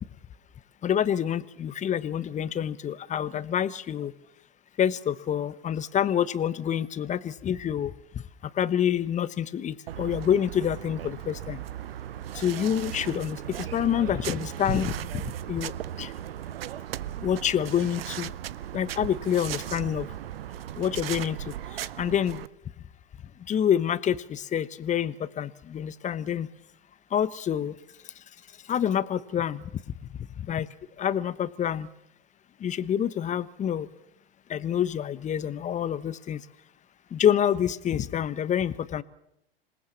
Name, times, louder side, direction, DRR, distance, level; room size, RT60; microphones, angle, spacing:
voice 1, 0.8-4.1 4.8-7.9 8.5-11.6 12.3-15.2 15.5-15.7 16.0-16.1 17.2-18.3 18.7-20.1 20.8-22.4 23.5-26.5 27.1-27.8 28.7-29.6 30.4-30.7 31.0-31.9 32.6-33.9 34.5-36.4 37.1-39.0, left 9 dB, 25° left, 17 dB, 1.1 m, -27 dB
sound 1, 9.9-22.5, right 11 dB, 70° right, 0.8 m, -37 dB
27.0 x 19.0 x 7.2 m, 0.82 s
hypercardioid pair, 95°, 30 cm